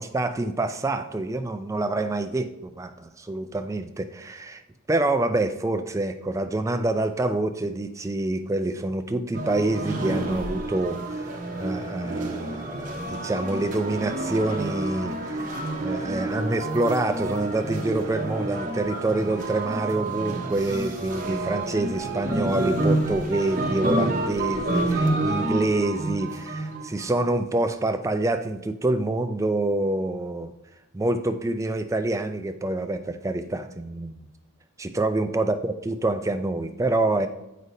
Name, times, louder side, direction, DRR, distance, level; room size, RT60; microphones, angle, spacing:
voice 1, 0.0-4.6 4.9-30.5 30.9-34.3 34.8-37.3, right 2 dB, 15° right, 8 dB, 0.3 m, -27 dB
sound 1, 9.3-27.2, right 2 dB, 35° right, 0.8 m, -29 dB
7.9 x 5.1 x 2.7 m, 0.93 s
head